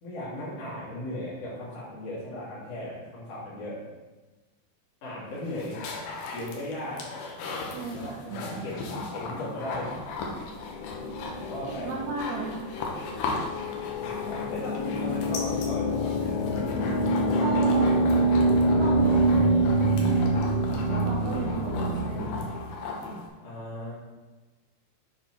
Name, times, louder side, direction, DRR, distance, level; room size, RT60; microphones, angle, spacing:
voice 1, 0.0-3.8 5.0-5.8 6.3-7.0 7.9-9.9 11.5-11.9 14.0-16.5 23.4-23.9, left 1 dB, 35° left, -8 dB, 3.0 m, -37 dB
sound 1, 5.2-23.3, left 3 dB, 75° left, 2.3 m, -37 dB
voice 2, 7.7-8.7 11.7-12.7 17.4-18.0 18.8-22.4, right 3 dB, 75° right, -6 dB, 2.3 m, -35 dB
sound 2, 10.6-22.4, right 1 dB, 90° left, 3.6 m, -26 dB
8.2 x 4.8 x 4.5 m, 1.2 s
omnidirectional pair, 5.5 m